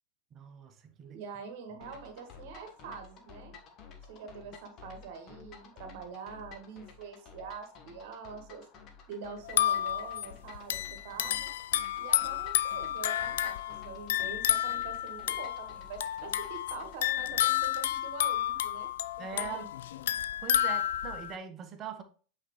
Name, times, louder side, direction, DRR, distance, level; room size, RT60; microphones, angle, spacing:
voice 1, 0.3-1.2 19.2-19.7 20.4-22.0, right 7 dB, 30° right, 1.0 m, -42 dB
voice 2, 1.1-3.6 4.1-8.7 9.1-11.5 12.0-18.9 19.2-19.7, right 5 dB, 50° right, 1.5 m, -45 dB
sound 1, 1.8-17.7, left 6 dB, 35° left, 1.2 m, -52 dB
sound 2, 9.4-21.4, left 12 dB, 55° left, 0.4 m, -31 dB
8.1 x 4.4 x 3.0 m
figure-of-eight pair, 90°, 0 cm